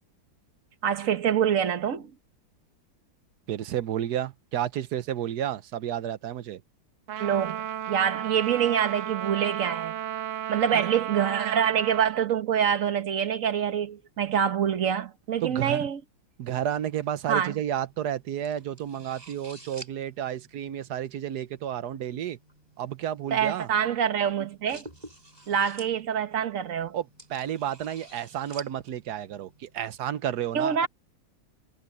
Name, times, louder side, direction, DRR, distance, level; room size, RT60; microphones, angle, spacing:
voice 1, 0.8-2.1 7.2-9.9 10.5-16.0 17.3-17.5 23.3-24.8 25.5-27.0 30.5-30.9, right 8 dB, 45° right, 1.4 m, -26 dB
voice 2, 3.5-6.6 10.7-10.9 15.4-15.9 16.4-22.4 22.8-23.7 26.9-30.9, right 10 dB, 60° right, 1.3 m, -31 dB
Trumpet, 7.1-12.1, right 11 dB, 80° right, 0.7 m, -33 dB
sound 1, 16.9-29.8, right 2 dB, 20° right, 4.5 m, -51 dB
omnidirectional pair, 2.1 m